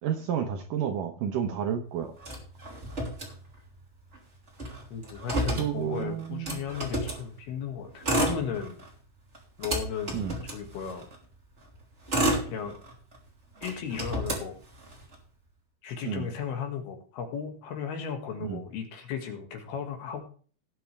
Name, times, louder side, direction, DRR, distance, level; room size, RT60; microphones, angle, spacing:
voice 1, 0.0-2.1 5.6-6.6 10.1-10.4 16.0-16.3 18.4-18.6, right 8 dB, 70° right, 5 dB, 2.2 m, -31 dB
Motor vehicle (road), 2.2-3.8 4.1-4.2 4.5-7.2 7.9-8.9 9.3-11.1 11.7-13.2 13.6-15.1, right 1 dB, 20° right, 2.7 m, -31 dB
voice 2, 4.9-8.8 9.6-10.2 10.5-11.1 12.5-12.8 13.6-14.6 15.8-20.2, left 7 dB, 75° left, 4 dB, 4.0 m, -35 dB
18.5 x 7.7 x 3.4 m, 0.42 s
omnidirectional pair, 4.7 m